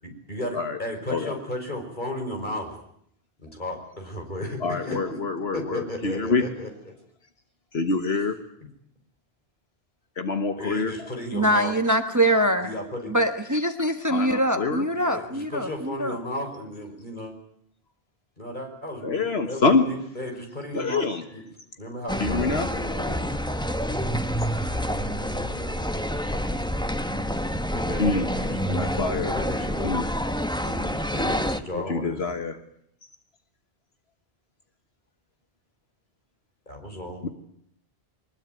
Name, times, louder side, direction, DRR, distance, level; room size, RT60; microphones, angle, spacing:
voice 1, 0.0-2.8 3.5-5.2 5.5-6.9 8.1-8.2 10.6-11.8 12.6-13.1 14.9-17.3 18.4-21.4 21.8-23.3 24.6-26.7 27.1-27.2 27.7-28.6 29.1-29.9 30.6-32.4 36.7-37.3, left 1 dB, 50° left, 3 dB, 5.8 m, -35 dB
voice 2, 4.6-6.5 7.7-8.3 10.2-10.9 14.1-14.9 19.0-19.8 20.7-21.2 22.2-22.7 28.0-28.3 28.7-29.3 29.8-30.1 31.7-32.6 37.2-37.3, left 4 dB, 75° left, 7 dB, 1.8 m, -25 dB
voice 3, 11.3-12.7 13.1-16.2, right 1 dB, 15° right, 7 dB, 1.5 m, -23 dB
sound 1, 22.1-31.6, equal, 5° left, 1.1 m, -28 dB
22.5 x 21.0 x 9.3 m, 0.69 s
omnidirectional pair, 1.1 m